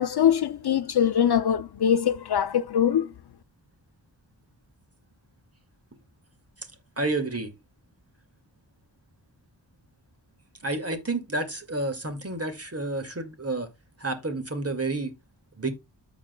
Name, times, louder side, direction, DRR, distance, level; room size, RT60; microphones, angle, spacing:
voice 1, 0.0-3.1, left 9 dB, 60° left, 0.5 m, -23 dB
voice 2, 7.0-7.5 10.6-13.7 14.0-15.1 15.6-15.7, right 2 dB, 35° right, 2.2 m, -30 dB
13.5 x 5.1 x 2.3 m
cardioid pair, 45°, 44 cm